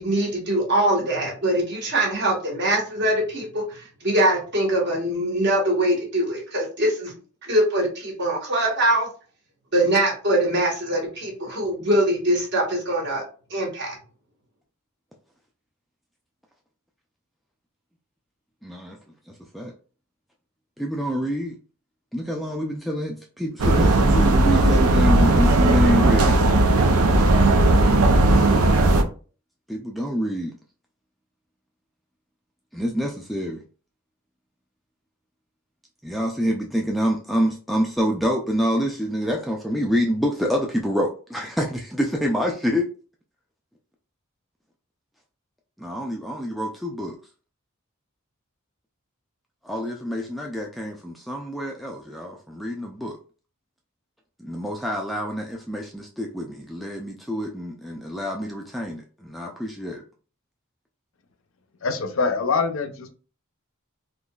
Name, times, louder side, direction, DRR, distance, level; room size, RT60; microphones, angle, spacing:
voice 1, 0.0-9.1 9.7-13.2 13.5-14.0, right 1 dB, 55° right, -1 dB, 1.4 m, -23 dB
voice 2, 18.6-19.0 19.3-19.7 20.8-21.6 22.1-26.4 29.7-30.5 32.7-33.6 36.0-42.9 45.8-47.2 49.6-53.2 54.4-60.0, equal, ahead, 0 dB, 0.3 m, -27 dB
sound 1, 23.6-29.0, right 2 dB, 90° right, 0.6 m, -17 dB
voice 3, 61.8-63.1, left 4 dB, 65° left, 8 dB, 0.6 m, -24 dB
3.9 x 2.9 x 2.3 m, 0.38 s
head